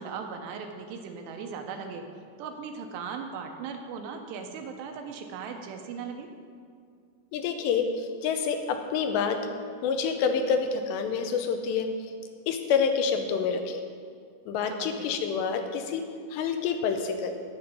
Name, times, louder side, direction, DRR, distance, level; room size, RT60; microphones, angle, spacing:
voice 1, 0.0-2.0 2.4-6.3 14.7-15.1, right 6 dB, 80° right, 4 dB, 2.9 m, -38 dB
voice 2, 7.3-9.4 9.8-11.9 12.5-13.8 14.5-17.4, left 6 dB, 80° left, 6 dB, 2.8 m, -27 dB
10.5 x 8.9 x 5.4 m, 2.2 s
omnidirectional pair, 5.1 m